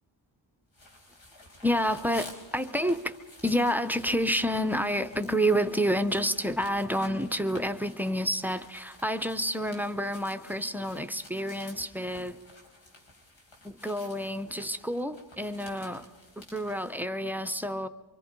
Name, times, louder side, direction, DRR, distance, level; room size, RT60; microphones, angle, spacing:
sound 1, 0.7-17.0, left 1 dB, 80° left, 4.6 m, -52 dB
voice 1, 1.6-3.1 3.4-12.4 13.6-16.1 16.4-17.9, equal, 5° right, 11 dB, 0.6 m, -29 dB
25.0 x 24.5 x 5.3 m, 1.2 s
wide cardioid pair, 165°, 45 cm